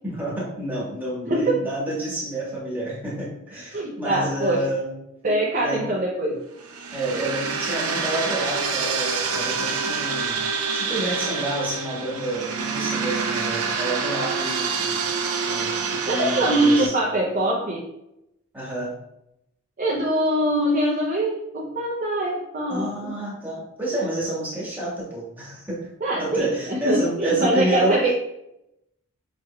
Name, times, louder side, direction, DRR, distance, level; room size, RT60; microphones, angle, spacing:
voice 1, 0.0-4.9 5.6-5.8 6.9-10.4 10.7-15.0 15.4-16.9 18.5-18.9 22.7-25.8 26.2-28.1, right 1 dB, 10° right, -6 dB, 1.4 m, -29 dB
voice 2, 1.3-1.6 3.7-4.6 5.2-6.4 16.1-17.8 19.8-23.1 26.0-28.1, right 1 dB, 40° right, -3 dB, 0.6 m, -23 dB
sound 1, 6.6-16.9, right 5 dB, 90° right, 0.7 m, -27 dB
5.6 x 3.5 x 2.3 m, 0.85 s
head